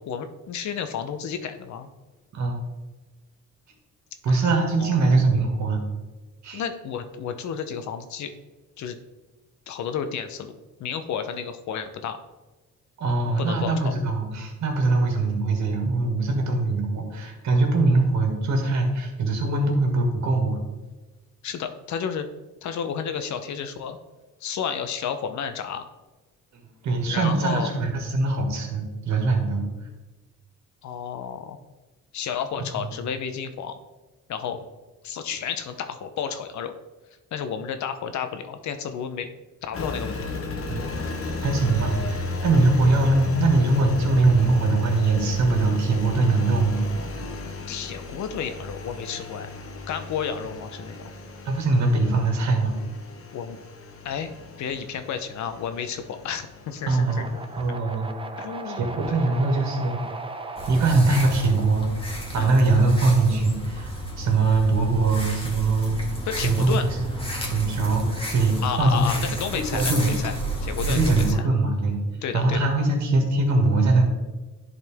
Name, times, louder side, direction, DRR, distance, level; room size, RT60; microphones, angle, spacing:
voice 1, 0.0-1.9 4.3-4.4 4.8-4.9 6.5-8.3 8.8-9.0 9.7-12.2 13.4-13.9 21.4-22.3 22.6-24.0 24.4-25.9 27.1-27.7 30.8-31.6 32.1-33.8 34.3-34.6 35.0-36.7 37.3-39.3 39.6-40.2 47.7-49.5 49.9-51.0 53.3-53.6 54.0-54.3 54.6-57.4 58.4-58.9 62.4-62.6 66.3-66.9 68.6-70.3 70.6-71.4 72.2-72.6, left 7 dB, 70° left, 8 dB, 0.8 m, -31 dB
voice 2, 2.3-2.6 4.2-5.8 6.4-6.6 13.0-20.6 26.5-29.7 32.8-32.9 40.7-40.8 41.4-46.9 51.4-52.7 56.9-57.3 57.6-58.1 58.7-58.8 59.0-60.0 60.7-66.0 66.4-70.1 70.9-72.0 72.3-74.0, right 3 dB, 65° right, 2 dB, 2.0 m, -22 dB
Engine, 39.7-57.7, left 3 dB, 50° left, 1.2 m, -35 dB
sound 1, 56.8-62.9, right 3 dB, 15° right, 0.7 m, -38 dB
sound 2, 60.6-71.3, right 1 dB, 20° left, 1.7 m, -32 dB
11.0 x 4.1 x 3.5 m, 1.2 s
cardioid pair, 90°, 30 cm